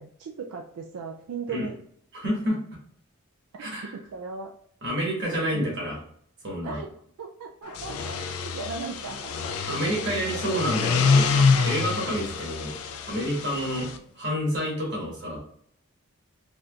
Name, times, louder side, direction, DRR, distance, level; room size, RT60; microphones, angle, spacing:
voice 1, 0.0-1.7 3.6-4.5 5.5-5.8 6.6-9.3 9.7-10.2, right 4 dB, 80° right, 1 dB, 0.3 m, -38 dB
voice 2, 2.1-2.6 3.6-3.9 4.8-6.0 6.4-6.8 9.7-12.7 13.1-13.9 14.2-15.4, equal, 50° right, -3 dB, 1.3 m, -29 dB
sound 1, 7.7-14.0, left 5 dB, 75° left, 0.4 m, -26 dB
3.5 x 2.7 x 2.3 m, 0.63 s
head